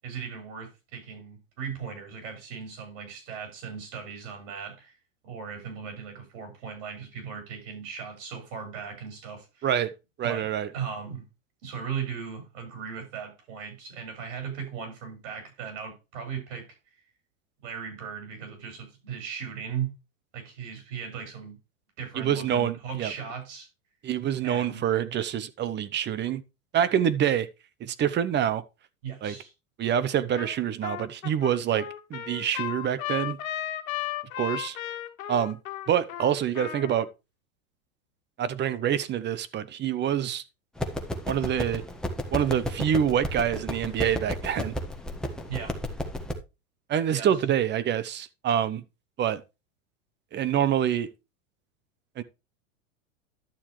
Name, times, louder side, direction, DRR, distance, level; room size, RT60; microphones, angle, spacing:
voice 1, 0.0-4.9 5.2-9.7 10.2-10.5 10.7-11.2 11.6-16.7 17.6-19.9 20.3-21.6 22.0-23.7 24.4-24.9 29.0-29.5 45.5-45.8 47.1-47.3, right 7 dB, 60° right, 6.3 m, -37 dB
voice 2, 9.6-9.9 10.2-10.7 22.2-23.1 24.0-26.4 26.7-27.5 27.8-28.6 29.2-29.3 29.8-33.4 34.4-34.8 35.3-35.6 35.9-37.1 38.4-40.4 41.3-41.8 42.3-44.7 46.9-48.8 49.2-49.4 50.3-51.1 52.2-52.3, right 9 dB, 25° right, 0.8 m, -26 dB
Trumpet, 30.4-30.6 30.8-37.0, left 12 dB, 80° left, 1.6 m, -35 dB
sound 1, 40.8-46.3, equal, ahead, 1.5 m, -33 dB
11.5 x 7.1 x 3.2 m
hypercardioid pair, 115°, 41 cm